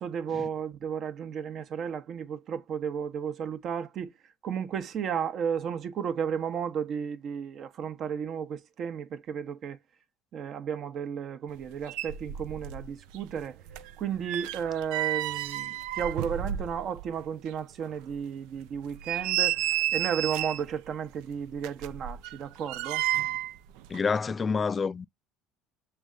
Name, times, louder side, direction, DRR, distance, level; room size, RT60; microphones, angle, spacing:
voice 1, 0.0-4.1 4.4-9.8 10.3-13.6 14.0-19.6 19.9-23.0, right 7 dB, 50° right, 0.8 m, -33 dB
sound 1, 11.6-11.7 11.9-12.9 13.1-17.1 17.5-17.6 18.1-18.2 18.8-20.7 21.6-23.6 23.8-24.0, right 13 dB, 75° right, 0.4 m, -31 dB
voice 2, 23.9-25.1, left 5 dB, 30° left, 0.3 m, -28 dB
6.3 x 3.4 x 2.4 m
supercardioid pair, 85°, 0 cm